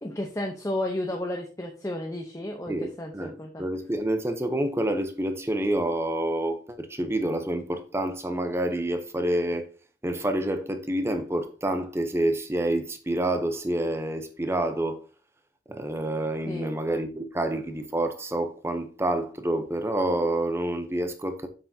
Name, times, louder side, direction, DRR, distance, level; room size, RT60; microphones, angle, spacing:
voice 1, 0.0-3.6 16.5-16.7, left 1 dB, 15° left, 0.7 m, -32 dB
voice 2, 2.7-3.3 3.6-9.7 10.0-15.0 15.7-21.5, right 1 dB, 15° right, 0.7 m, -28 dB
7.5 x 6.7 x 2.8 m
head